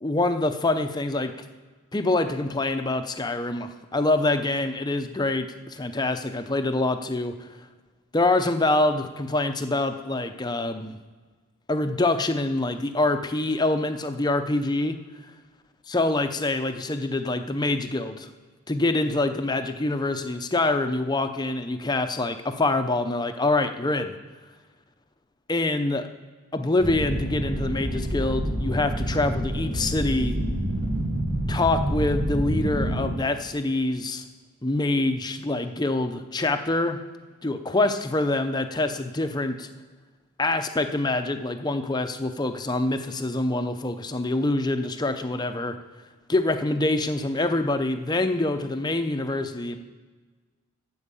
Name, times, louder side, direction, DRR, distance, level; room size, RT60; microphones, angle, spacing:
voice 1, 0.0-1.3 1.9-7.5 8.1-11.0 11.7-15.0 15.9-18.3 18.7-24.2 25.5-26.1 26.5-30.4 31.5-34.3 34.6-37.0 37.4-39.7 40.4-45.8 46.3-49.8, left 2 dB, 20° left, 8 dB, 0.6 m, -25 dB
sound 1, 26.8-33.1, right 1 dB, 85° right, 2.7 m, -27 dB
13.0 x 4.6 x 8.3 m, 1.4 s
head